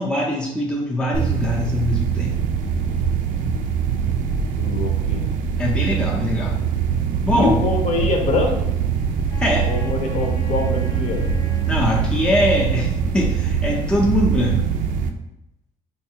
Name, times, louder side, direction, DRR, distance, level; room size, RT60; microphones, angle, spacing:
voice 1, 0.0-2.4 5.6-6.6 7.2-7.6 9.4-9.7 11.7-14.6, equal, 5° left, -2 dB, 0.5 m, -22 dB
sound 1, 1.1-15.1, right 7 dB, 75° right, 0.4 m, -23 dB
voice 2, 4.6-5.3 7.3-8.7 9.7-11.3, left 3 dB, 50° left, 2 dB, 0.7 m, -24 dB
Wind instrument woodwind instrument, 9.3-13.7, left 4 dB, 85° left, 0.9 m, -41 dB
4.4 x 2.4 x 2.8 m, 0.84 s
cardioid pair, 160°, 14 cm